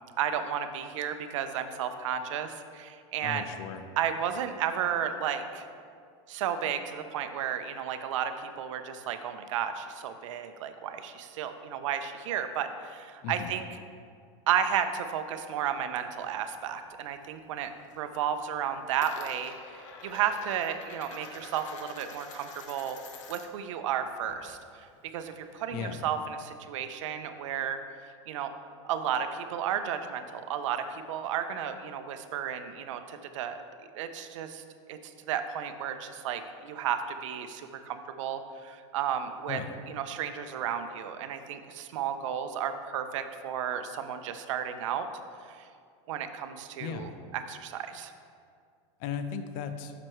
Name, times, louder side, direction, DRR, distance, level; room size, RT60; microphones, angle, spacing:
voice 1, 0.2-3.5 4.0-5.7 6.3-13.7 14.5-23.0 23.3-27.8 28.3-28.5 28.8-33.6 33.9-39.6 39.9-45.1 45.5-45.7 46.1-48.1, right 8 dB, 80° right, 9 dB, 0.6 m, -33 dB
voice 2, 3.2-3.8 13.2-13.5 25.7-26.0 39.5-39.7 46.8-47.2 49.0-49.9, left 7 dB, 55° left, 9 dB, 0.6 m, -36 dB
Coin (dropping), 16.1-17.3 17.6-18.1 18.4-23.7 24.0-25.6, left 4 dB, 85° left, 0.9 m, -48 dB
7.6 x 6.0 x 3.1 m, 2.2 s
supercardioid pair, 130°, 16 cm